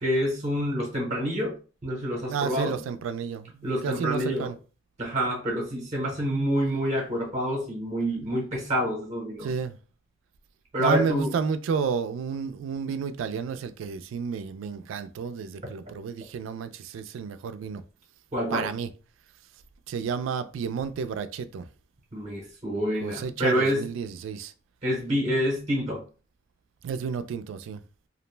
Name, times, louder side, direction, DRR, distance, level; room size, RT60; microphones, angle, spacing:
voice 1, 0.0-1.5 1.8-2.8 3.6-4.5 5.0-9.5 10.7-11.3 18.3-18.7 22.1-23.9 24.8-26.0, equal, 35° right, 0.7 m, -27 dB
voice 2, 2.3-4.5 9.4-9.8 10.8-17.8 18.5-18.9 19.9-21.7 23.0-24.5 26.8-27.8, right 6 dB, 80° right, 0.3 m, -31 dB
2.4 x 2.1 x 3.2 m
head